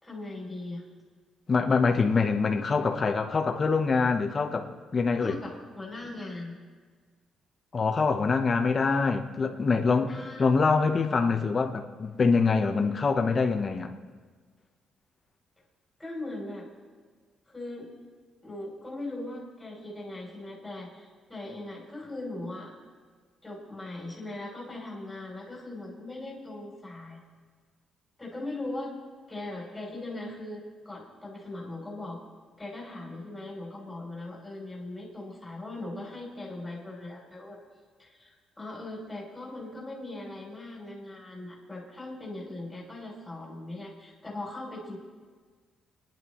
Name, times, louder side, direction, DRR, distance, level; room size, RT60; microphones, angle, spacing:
voice 1, 0.0-0.8 5.2-6.6 10.1-10.4 16.0-16.7 17.5-17.9 18.4-22.7 23.4-27.2 28.2-28.9 29.3-32.2 32.6-37.6 38.0-45.0, left 2 dB, 5° left, -3 dB, 3.3 m, -39 dB
voice 2, 1.5-4.7 4.9-5.4 7.7-13.9, left 4 dB, 30° left, 4 dB, 1.0 m, -25 dB
29.5 x 10.5 x 3.1 m, 1.5 s
cardioid pair, 155°, 0 cm